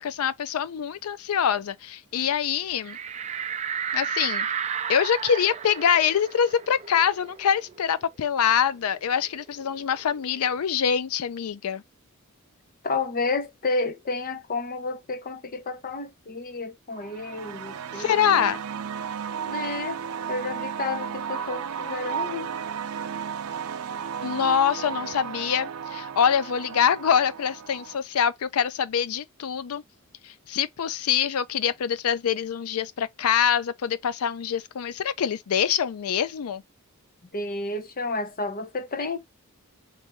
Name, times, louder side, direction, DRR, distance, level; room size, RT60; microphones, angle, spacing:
voice 1, 0.0-3.0 3.9-4.5 4.9-11.8 17.9-18.6 24.2-29.8 30.2-36.6, left 8 dB, 80° left, 0.4 m, -25 dB
sound 1, 2.8-8.0 8.4-8.5 8.8-10.5, right 7 dB, 30° right, 0.3 m, -33 dB
voice 2, 12.8-18.5 19.5-20.0 20.3-22.5 37.3-39.2, left 3 dB, 40° left, 0.7 m, -31 dB
sound 2, 16.9-28.0, right 7 dB, 90° right, 0.5 m, -34 dB
3.4 x 3.3 x 2.9 m
head